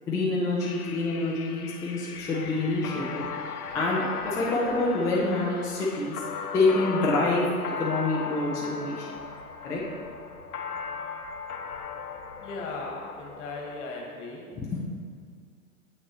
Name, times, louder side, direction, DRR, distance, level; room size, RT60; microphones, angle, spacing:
voice 1, 0.1-3.3 3.7-6.2 6.5-7.5 7.8-9.1 9.6-9.8 14.5-14.8, left 2 dB, 10° left, -5 dB, 0.4 m, -27 dB
sound 1, 0.6-13.9, left 6 dB, 80° left, 0.6 m, -37 dB
voice 2, 12.4-14.5, left 3 dB, 50° left, 0 dB, 1.6 m, -37 dB
7.9 x 6.2 x 3.0 m, 2.1 s
figure-of-eight pair, 100°, 44 cm